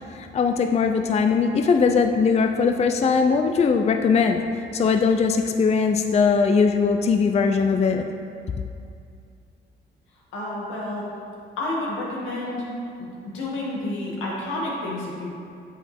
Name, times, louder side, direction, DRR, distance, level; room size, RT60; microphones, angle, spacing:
voice 1, 0.1-8.1, left 5 dB, 35° left, 5 dB, 0.4 m, -20 dB
voice 2, 10.3-11.1 11.6-12.6 13.0-13.1 13.3-15.3, left 1 dB, 90° left, -5 dB, 2.2 m, -29 dB
8.4 x 7.7 x 3.5 m, 2.4 s
cardioid pair, 90°, 20 cm